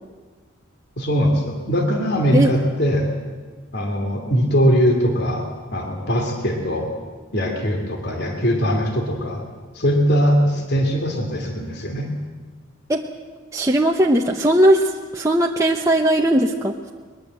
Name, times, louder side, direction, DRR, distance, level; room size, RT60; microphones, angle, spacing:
voice 1, 1.0-3.1 3.7-6.9 7.3-9.4 9.7-12.1, equal, 50° left, 3 dB, 2.9 m, -21 dB
voice 2, 13.5-16.9, right 1 dB, 15° right, 0 dB, 0.9 m, -18 dB
21.5 x 21.5 x 7.8 m, 1.4 s
head